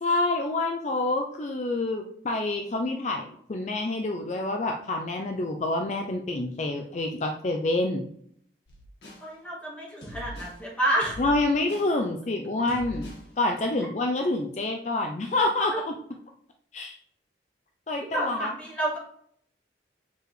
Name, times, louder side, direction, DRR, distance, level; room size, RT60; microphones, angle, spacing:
voice 1, 0.0-8.1 11.2-16.0 16.7-17.0 17.9-18.5, left 2 dB, 40° left, 3 dB, 0.4 m, -27 dB
sound 1, 8.7-9.3 10.0-10.6 11.0-11.9 12.7-13.3, equal, 65° left, 1.7 m, -42 dB
voice 2, 9.2-11.2 18.1-19.0, right 1 dB, 5° left, -6 dB, 2.0 m, -29 dB
6.8 x 4.8 x 3.1 m, 0.67 s
head